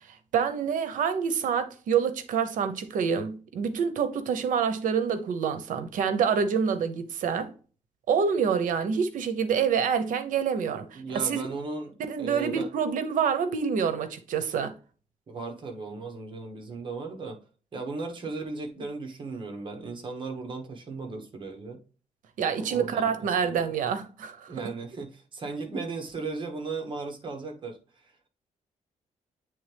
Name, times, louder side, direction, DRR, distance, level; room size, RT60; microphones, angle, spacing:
voice 1, 0.3-7.5 8.1-11.4 12.1-14.7 22.4-24.7, right 6 dB, 80° right, 0.8 m, -27 dB
voice 2, 10.9-12.7 15.3-17.4 17.7-21.8 22.6-23.6 24.5-27.8 28.0-28.1, right 3 dB, 35° right, 1.3 m, -36 dB
8.5 x 3.5 x 3.4 m
wide cardioid pair, 155°, 13 cm